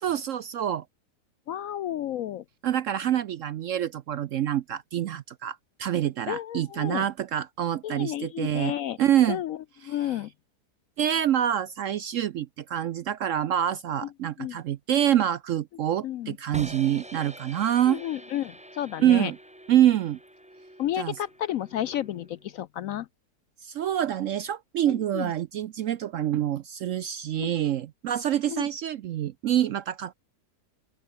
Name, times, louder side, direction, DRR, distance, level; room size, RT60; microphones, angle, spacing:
voice 1, 0.0-0.8 2.6-8.7 9.0-9.4 9.8-10.1 11.0-18.0 19.0-19.4 19.7-20.2 21.0-21.2 23.6-30.1, right 11 dB, 65° right, 0.8 m, -26 dB
voice 2, 1.5-2.4 6.3-7.0 7.8-9.0 9.3-9.6 9.8-10.3 14.4-14.6 16.0-16.4 17.9-19.3 20.8-23.1 24.9-25.3 27.4-27.5 28.5-28.7, left 12 dB, 70° left, 0.8 m, -32 dB
sound 1, 16.5-22.5, right 1 dB, 5° right, 1.5 m, -46 dB
open air
omnidirectional pair, 1.8 m